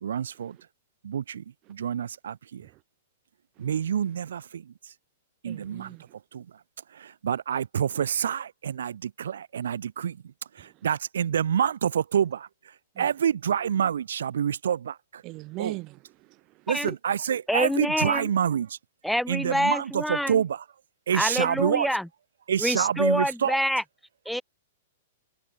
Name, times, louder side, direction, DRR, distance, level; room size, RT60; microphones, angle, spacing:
voice 1, 0.0-0.6 1.0-2.7 3.6-4.9 5.4-6.0 6.3-6.5 6.9-15.2 15.6-15.8 16.7-18.8 19.3-20.6 21.1-21.9 22.5-23.6, right 8 dB, 85° right, 1.1 m, -27 dB
voice 2, 5.4-6.0 10.6-10.7 12.9-13.1 15.2-16.4, right 22 dB, 35° right, 1.1 m, -40 dB
voice 3, 17.5-18.3 19.0-20.4 21.1-22.1 22.6-23.8 24.3-24.4, equal, ahead, 0.6 m, -26 dB
hypercardioid pair, 145°, 0 cm